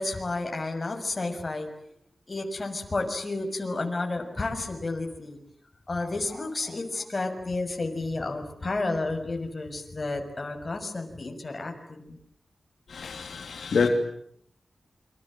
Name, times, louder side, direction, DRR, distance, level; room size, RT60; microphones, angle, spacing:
voice 1, 0.0-1.7 2.3-5.4 5.9-12.2, left 2 dB, 35° left, 6.4 m, -31 dB
voice 2, 12.9-13.9, left 5 dB, 85° left, 3.0 m, -27 dB
28.5 x 26.0 x 7.7 m
wide cardioid pair, 90°, 0 cm